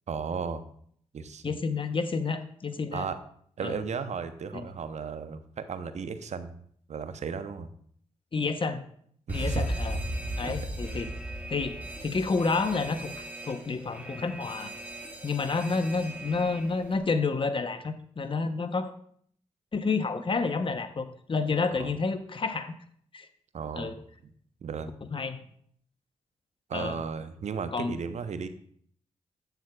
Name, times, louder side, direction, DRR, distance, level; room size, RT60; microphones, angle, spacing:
voice 1, 0.1-0.6 1.1-1.5 2.9-3.2 3.6-6.6 6.9-7.7 9.3-9.6 10.4-10.8 21.8-21.9 23.5-23.9 24.2-24.3 24.6-24.9 26.7-28.5, right 6 dB, 60° right, 11 dB, 0.7 m, -35 dB
voice 2, 1.4-3.1 3.6-3.8 4.5-4.7 8.3-8.8 9.3-10.0 10.4-11.1 11.5-14.7 15.2-18.9 19.7-22.7 23.1-23.3 23.7-23.9 25.0-25.4 26.7-27.0 27.7-28.0, left 4 dB, 40° left, 10 dB, 0.8 m, -30 dB
Alarm, 9.3-17.0, right 1 dB, 10° right, 2.0 m, -36 dB
9.0 x 7.4 x 2.3 m, 0.63 s
supercardioid pair, 45°, 13 cm